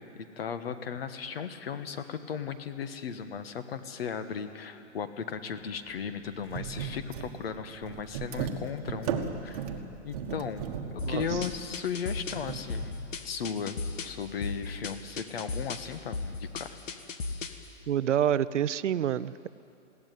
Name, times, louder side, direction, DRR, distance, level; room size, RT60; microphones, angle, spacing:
voice 1, 0.1-9.7 10.0-12.9 13.2-16.8, left 7 dB, 50° left, 10 dB, 1.4 m, -36 dB
sound 1, 5.5-5.7 6.0-6.1 6.4-13.1, right 6 dB, 30° right, 1.4 m, -36 dB
sound 2, 11.0-17.7, left 3 dB, 80° left, 1.8 m, -37 dB
voice 2, 17.9-19.5, right 10 dB, 70° right, 16 dB, 0.7 m, -27 dB
21.0 x 16.5 x 9.3 m, 2.6 s
hypercardioid pair, 170°, 38 cm